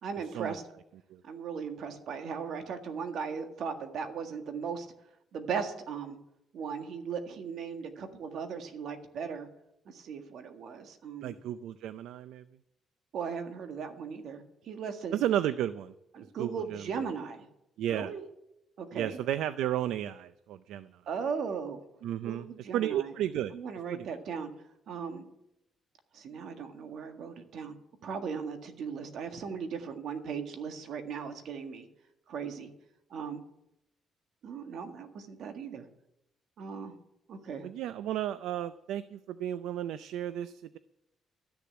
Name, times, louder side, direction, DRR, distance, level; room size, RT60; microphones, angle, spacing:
voice 1, 0.0-0.6 1.2-4.9 5.3-6.2 6.5-9.5 9.8-11.4 13.1-15.2 16.1-17.5 17.9-18.2 18.8-19.2 21.1-21.8 22.2-23.1 23.5-24.5 24.9-25.3 26.1-27.7 28.0-31.8 32.3-32.7 33.1-33.4 34.4-35.9 36.6-36.9 37.3-37.7, right 6 dB, 70° right, 6 dB, 1.7 m, -37 dB
voice 2, 11.2-12.4 15.1-15.9 16.4-16.8 17.8-18.1 18.9-20.9 22.0-22.4 22.7-23.5 23.9-24.1 37.6-40.8, right 11 dB, 85° right, 14 dB, 0.4 m, -33 dB
13.5 x 7.0 x 8.7 m, 0.82 s
cardioid pair, 90°, 0 cm